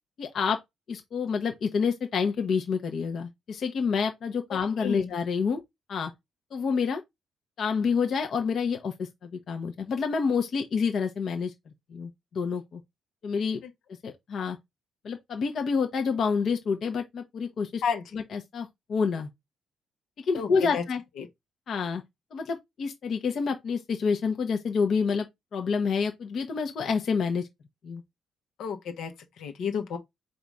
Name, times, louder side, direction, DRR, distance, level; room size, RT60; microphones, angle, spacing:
voice 1, 0.2-0.6 0.9-5.6 5.9-6.1 6.5-7.0 7.6-11.5 11.9-12.8 13.2-13.6 14.0-14.6 15.0-17.8 18.1-19.3 20.2-21.0 21.7-22.0 22.3-25.3 25.5-27.5 27.8-28.0, left 5 dB, 60° left, 1.0 m, -28 dB
voice 2, 4.5-5.1 13.6-13.7 17.8-18.1 20.3-20.8 21.2-21.3 28.6-30.0, left 7 dB, 80° left, 1.2 m, -32 dB
4.1 x 2.7 x 4.8 m
cardioid pair, 90°, 0 cm